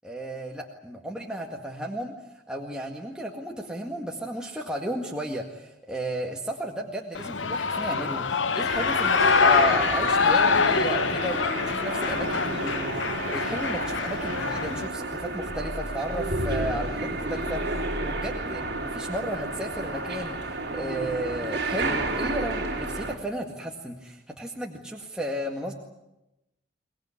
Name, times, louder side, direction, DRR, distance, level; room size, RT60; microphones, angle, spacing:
voice 1, 0.0-2.2 2.5-25.7, right 1 dB, 5° right, 0 dB, 1.9 m, -34 dB
Shout / Cheering, 7.1-14.9, left 5 dB, 80° left, 0.9 m, -25 dB
sound 1, 8.7-23.2, right 2 dB, 55° right, 3.7 m, -31 dB
24.0 x 19.5 x 9.8 m, 0.90 s
head